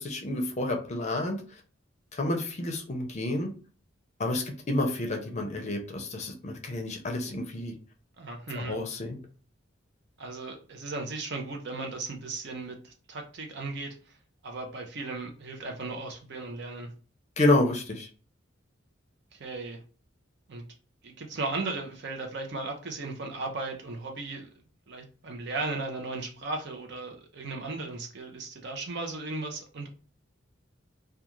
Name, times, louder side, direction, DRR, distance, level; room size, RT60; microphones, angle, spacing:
voice 1, 0.0-1.4 2.1-3.5 4.2-7.7 8.6-9.2 17.4-18.1, left 2 dB, 35° left, 3 dB, 0.5 m, -29 dB
voice 2, 8.2-8.8 10.2-14.0 14.4-16.9 19.3-19.8 20.5-20.6 21.0-24.5 24.9-29.9, right 3 dB, 60° right, 3 dB, 0.6 m, -36 dB
2.4 x 2.3 x 3.0 m, 0.37 s
head